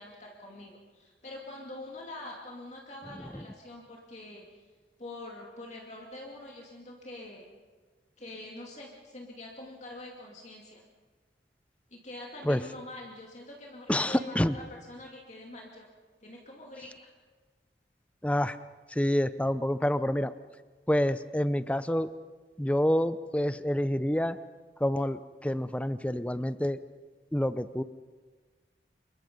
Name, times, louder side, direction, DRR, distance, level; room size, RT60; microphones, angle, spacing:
voice 1, 0.0-4.6 5.0-7.5 8.2-10.8 11.9-15.9 16.2-17.1, left 2 dB, 40° left, -1 dB, 2.4 m, -45 dB
voice 2, 13.9-14.5 18.2-18.6 18.9-20.3 20.9-22.1 22.6-24.4 24.8-26.8 27.3-27.8, left 1 dB, 5° left, 13 dB, 0.6 m, -27 dB
26.5 x 22.0 x 5.4 m, 1.4 s
head